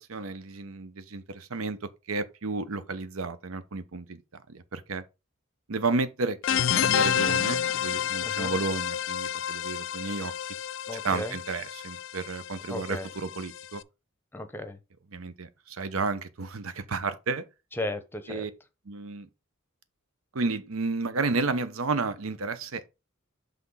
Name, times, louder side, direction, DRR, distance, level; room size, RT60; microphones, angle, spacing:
voice 1, 0.0-1.8 2.1-4.2 4.5-5.0 5.7-10.3 11.0-13.8 15.1-17.4 18.3-18.5 18.9-19.3 20.3-22.9, right 3 dB, 85° right, 0.8 m, -32 dB
sound 1, 6.4-13.8, left 9 dB, 60° left, 0.3 m, -29 dB
voice 2, 8.2-8.5 10.9-11.4 12.7-13.1 14.3-14.8 17.7-18.5, left 1 dB, 10° left, 0.7 m, -35 dB
5.9 x 3.5 x 5.5 m
head